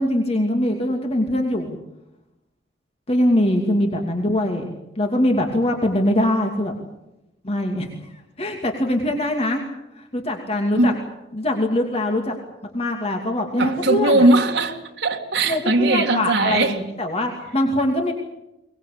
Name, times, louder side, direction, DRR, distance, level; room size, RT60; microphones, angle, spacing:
voice 1, 0.0-1.8 3.1-6.7 7.4-9.7 9.9-10.9 11.3-12.3 12.7-14.3 15.5-18.1, left 1 dB, 35° left, 2.7 m, -22 dB
voice 2, 13.6-16.8, right 2 dB, 70° right, 2.1 m, -19 dB
23.0 x 20.5 x 8.6 m
head